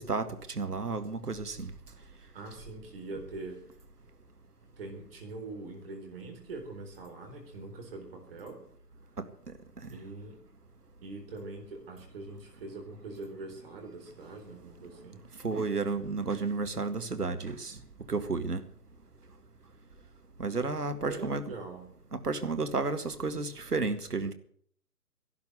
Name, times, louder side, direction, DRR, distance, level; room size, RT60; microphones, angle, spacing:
voice 1, 0.0-1.7 9.2-9.3 15.4-17.8 18.1-18.6 20.4-21.4 22.1-24.3, right 4 dB, 70° right, 2.0 m, -32 dB
voice 2, 2.3-3.6 4.8-8.6 9.9-10.4 11.0-15.2 21.1-21.9, right 3 dB, 35° right, 4.1 m, -43 dB
13.5 x 12.0 x 7.9 m
figure-of-eight pair, 140°, 48 cm